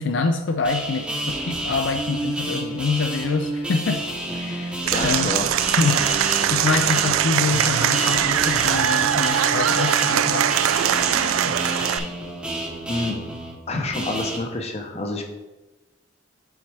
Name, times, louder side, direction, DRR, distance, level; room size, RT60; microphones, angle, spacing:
voice 1, 0.0-4.0 4.3-5.3 5.8-10.5, left 4 dB, 60° left, 6 dB, 0.4 m, -26 dB
sound 1, 0.6-14.4, right 1 dB, 5° right, 0.8 m, -30 dB
Applause / Crowd, 4.8-12.0, right 10 dB, 85° right, 0.3 m, -21 dB
voice 2, 4.9-5.6 5.8-5.9 12.9-13.2 13.7-15.2, left 2 dB, 30° left, 3 dB, 0.7 m, -28 dB
7.9 x 4.2 x 3.4 m, 1.1 s
head